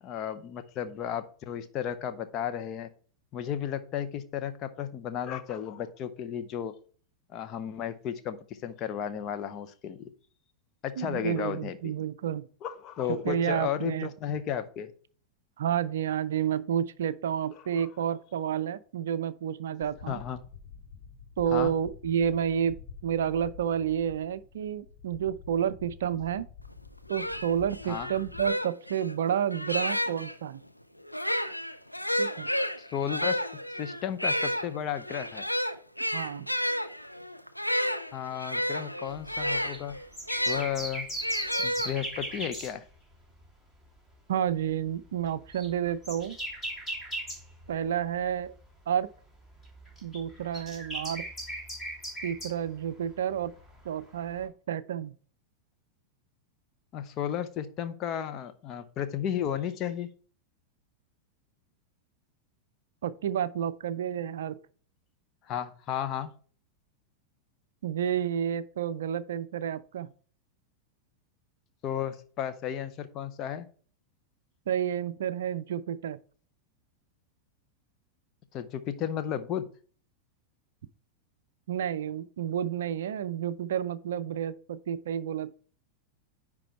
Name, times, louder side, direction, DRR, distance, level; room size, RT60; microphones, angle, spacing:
voice 1, 0.0-2.9 3.3-6.7 7.3-10.0 10.8-11.9 12.6-14.9 17.8-17.9 20.1-20.4 21.5-21.7 27.9-28.1 32.8-33.4 33.8-35.5 38.1-40.0 40.5-41.1 41.6-42.8 56.9-60.1 65.5-66.3 71.8-73.7 78.5-79.7, left 9 dB, 35° left, 0.8 m, -33 dB
voice 2, 11.0-12.5 13.2-14.1 15.6-20.2 21.4-26.5 27.1-30.6 32.2-32.5 36.1-36.5 44.3-46.4 47.7-48.5 48.9-49.1 50.0-51.2 52.2-53.5 53.8-55.1 63.0-64.6 67.8-70.1 74.7-76.2 81.7-85.5, right 9 dB, 60° right, 0.4 m, -30 dB
sound 1, 19.8-28.5, left 5 dB, 55° left, 2.4 m, -48 dB
sound 2, 26.7-26.8 27.1-30.3 31.0-40.7 41.2-42.3, equal, 90° left, 0.5 m, -31 dB
sound 3, 39.1-43.4 43.7-44.0 44.5-48.8 49.1-54.4, right 1 dB, 15° left, 3.2 m, -39 dB
10.0 x 3.6 x 4.4 m
figure-of-eight pair, 90°, 0 cm